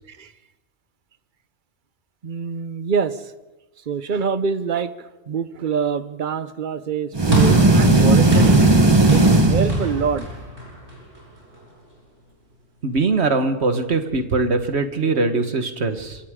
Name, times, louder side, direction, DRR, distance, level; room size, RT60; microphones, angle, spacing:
voice 1, 2.2-3.3 3.9-8.7 9.1-10.3, right 6 dB, 45° right, 13 dB, 1.0 m, -25 dB
sound 1, 7.1-10.3, right 2 dB, 20° right, 1.3 m, -15 dB
sound 2, 7.3-11.7, right 1 dB, 90° right, 7.4 m, -29 dB
voice 2, 12.8-16.2, right 3 dB, 60° right, 8 dB, 1.8 m, -21 dB
27.0 x 26.5 x 3.8 m, 1.1 s
omnidirectional pair, 1.2 m